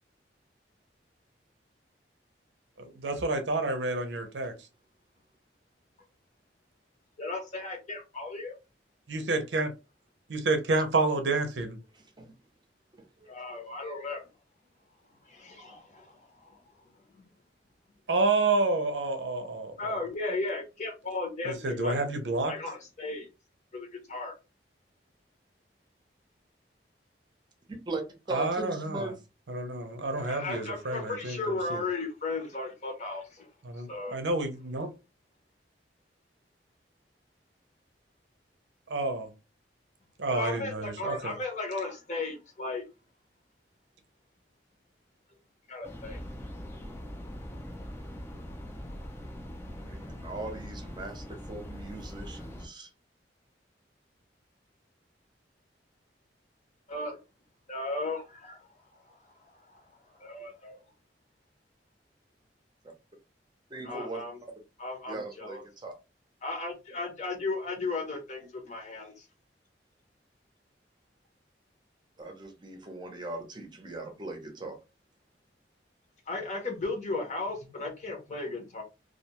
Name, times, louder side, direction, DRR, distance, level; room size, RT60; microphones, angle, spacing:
voice 1, 2.8-4.5 9.1-9.7 10.3-11.8 18.1-20.0 21.4-22.6 28.3-29.1 29.5-31.4 31.7-31.8 33.6-34.9 38.9-39.3 40.2-41.3, right 3 dB, 90° right, 0.6 m, -29 dB
voice 2, 7.2-8.5 13.3-14.2 15.2-16.6 19.8-22.0 22.5-23.3 23.7-24.3 30.2-33.5 33.9-34.2 40.3-42.8 45.7-46.2 56.9-57.2 57.7-58.6 59.1-59.8 60.2-60.8 63.8-64.4 64.8-65.6 66.4-69.2 76.3-78.8, left 3 dB, 40° left, 0.9 m, -35 dB
voice 3, 11.9-12.3 13.2-13.4 27.7-28.0 28.3-29.2 49.8-52.9 63.7-64.2 65.1-65.9 72.2-74.8, right 2 dB, 25° right, 0.7 m, -39 dB
sound 1, 45.8-52.7, equal, 15° left, 0.5 m, -42 dB
2.4 x 2.3 x 2.8 m
head